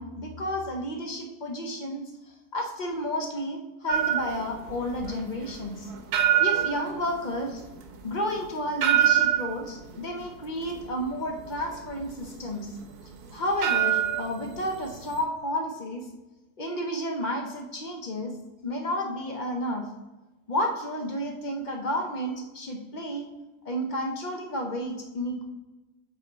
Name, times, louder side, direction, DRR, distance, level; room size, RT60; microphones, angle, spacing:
voice 1, 0.0-2.0 2.5-5.9 6.4-7.6 8.0-12.8 13.3-16.1 16.6-18.3 18.6-19.9 20.5-23.3 23.6-25.4, equal, 45° left, 3 dB, 0.6 m, -31 dB
sound 1, 3.9-15.2, right 11 dB, 85° right, 1.3 m, -27 dB
7.4 x 4.2 x 4.0 m, 1.1 s
omnidirectional pair, 1.6 m